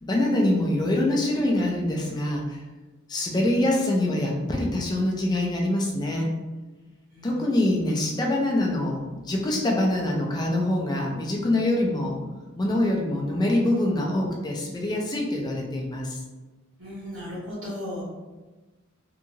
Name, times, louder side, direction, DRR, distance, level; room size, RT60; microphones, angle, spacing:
voice 1, 0.0-2.6 3.1-6.3 7.2-12.1 12.6-16.2, left 1 dB, 20° left, -1 dB, 0.4 m, -24 dB
voice 2, 7.1-7.9 16.8-18.0, left 1 dB, 65° right, -12 dB, 1.0 m, -37 dB
2.8 x 2.4 x 2.7 m, 1.2 s
head